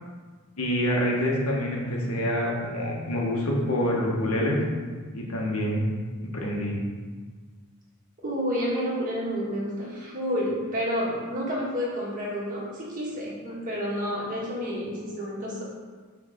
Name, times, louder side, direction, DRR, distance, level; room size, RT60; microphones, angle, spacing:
voice 1, 0.6-4.6 5.1-5.9 6.2-6.7, equal, 75° left, -2 dB, 1.3 m, -26 dB
voice 2, 8.2-15.6, equal, 35° right, -6 dB, 1.7 m, -30 dB
6.0 x 3.5 x 5.0 m, 1.5 s
head